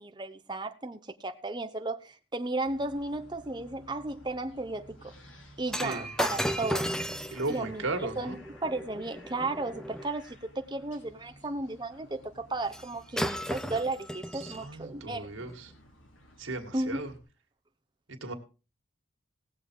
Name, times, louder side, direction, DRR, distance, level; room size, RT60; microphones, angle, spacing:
voice 1, 0.0-5.1 5.6-6.9 7.5-7.9 8.2-8.3 8.6-15.3 16.7-17.1, right 2 dB, 20° right, 0.9 m, -34 dB
sound 1, 2.6-17.2, equal, 75° left, 2.8 m, -54 dB
Shatter, 5.7-10.1 12.7-12.9 13.2-14.7 15.4-15.5, equal, 5° left, 0.5 m, -35 dB
voice 2, 5.7-6.1 6.6-6.7 7.3-8.4 14.3-15.7 16.4-17.1 18.2-18.3, right 2 dB, 80° right, 2.2 m, -36 dB
18.5 x 7.2 x 4.7 m
head